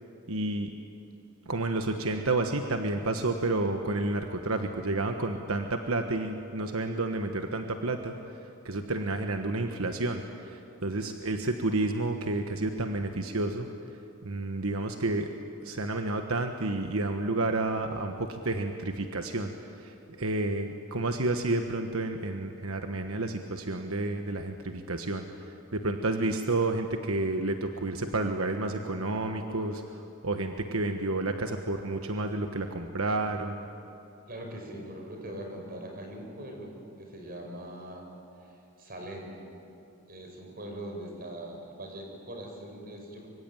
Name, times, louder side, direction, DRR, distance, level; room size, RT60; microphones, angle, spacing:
voice 1, 0.3-0.7 1.5-8.1 8.6-13.7 14.2-15.3 15.6-19.5 19.8-33.6, right 2 dB, 90° right, 5 dB, 1.4 m, -30 dB
voice 2, 34.3-38.1 38.4-38.5 38.8-39.5 40.1-43.3, right 1 dB, 45° right, 2 dB, 5.7 m, -41 dB
25.0 x 23.5 x 9.2 m, 2.9 s
head